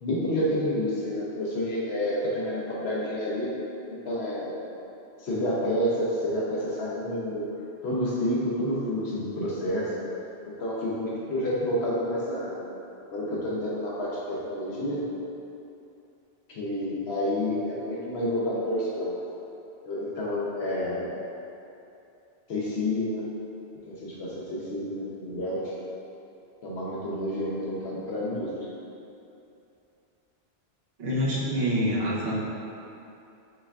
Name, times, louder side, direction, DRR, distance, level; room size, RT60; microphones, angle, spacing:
voice 1, 0.0-3.5 3.9-4.5 5.2-7.5 7.8-9.9 10.5-12.6 13.1-15.0 16.5-19.1 19.8-21.2 22.5-23.3 23.9-25.7 26.6-28.5, left 1 dB, 75° left, -5 dB, 1.0 m, -29 dB
voice 2, 31.0-32.3, equal, 70° right, -6 dB, 1.0 m, -26 dB
5.5 x 3.3 x 2.3 m, 2.8 s
omnidirectional pair, 1.1 m